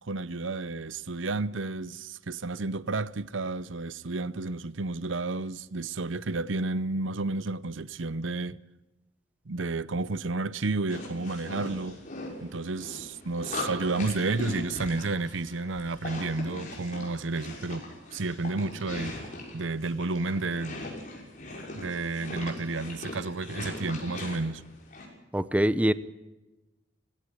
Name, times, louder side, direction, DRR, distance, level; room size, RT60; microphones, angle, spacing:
voice 1, 0.0-8.6 9.5-12.0 12.4-17.8 18.1-19.1 19.5-20.8 21.7-24.6, right 3 dB, 80° right, 0.8 m, -31 dB
sound 1, 10.9-25.1, left 2 dB, 40° left, 6.3 m, -40 dB
voice 2, 25.3-25.9, right 1 dB, 5° right, 0.6 m, -23 dB
18.0 x 17.0 x 10.0 m
head